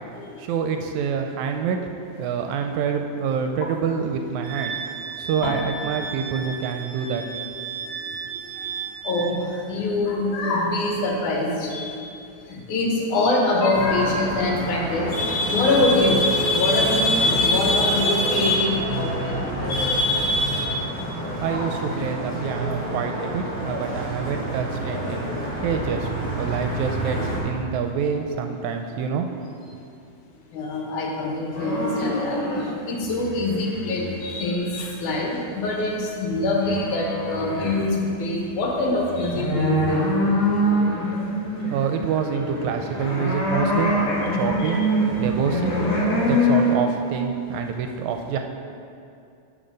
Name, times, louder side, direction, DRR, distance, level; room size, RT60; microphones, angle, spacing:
voice 1, 0.4-1.8 2.2-4.7 5.2-7.3 8.3-8.4 21.4-25.3 25.6-26.1 26.4-29.3 41.7-43.9 44.3-44.8 45.2-45.8 46.0-48.4, right 7 dB, 80° right, 5 dB, 1.8 m, -27 dB
Wind instrument woodwind instrument, 4.4-9.3, right 6 dB, 40° right, 1.7 m, -34 dB
voice 2, 9.0-9.4 9.7-12.1 12.5-19.4 19.7-20.7 25.3-25.5 30.5-32.4 32.8-40.1 43.0-43.2 44.6-44.8, left 2 dB, 75° left, -1 dB, 2.6 m, -23 dB
sound 1, 13.7-27.4, right 1 dB, 5° left, 1.0 m, -29 dB
sound 2, 31.5-32.6 32.9-34.4 35.7-35.8 36.3-37.8 38.2-38.3 38.5-46.7, equal, 55° left, 3.2 m, -24 dB
11.5 x 4.3 x 5.1 m, 2.5 s
omnidirectional pair, 3.5 m